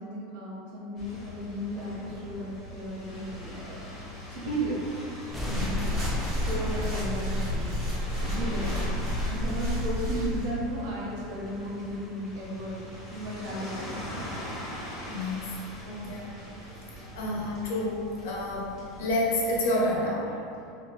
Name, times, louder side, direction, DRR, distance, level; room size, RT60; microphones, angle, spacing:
voice 1, 0.0-3.8 4.3-4.9 6.4-7.7 8.2-12.8 13.1-14.2 17.1-17.2, right 1 dB, 65° right, -4 dB, 0.8 m, -35 dB
sound 1, 1.0-19.6, equal, 30° left, 0.9 m, -42 dB
sound 2, 5.3-14.5 14.8-14.9 15.3-15.4 15.7-15.8 16.0-16.4 16.6-16.7, equal, ahead, 0.3 m, -41 dB
sound 3, 5.3-10.5, left 1 dB, 30° right, 1.2 m, -30 dB
voice 2, 5.5-5.9 15.1-15.4 15.8-16.3 17.1-20.5, left 1 dB, 80° left, -3 dB, 0.7 m, -29 dB
3.2 x 2.8 x 2.3 m, 2.6 s
supercardioid pair, 150°, 0 cm